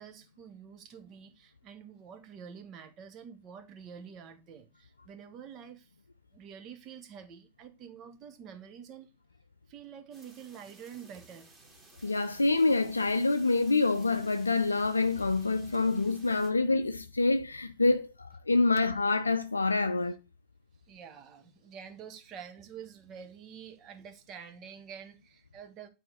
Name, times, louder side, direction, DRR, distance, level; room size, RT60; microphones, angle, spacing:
voice 1, 0.0-5.9 6.3-9.1 9.7-11.5 20.9-25.9, right 7 dB, 40° right, 1.4 m, -48 dB
sound 1, 10.1-16.5, right 3 dB, 20° right, 2.5 m, -57 dB
voice 2, 12.0-20.2, left 3 dB, 85° left, 0.4 m, -26 dB
9.0 x 4.2 x 3.9 m
figure-of-eight pair, 85°, 0 cm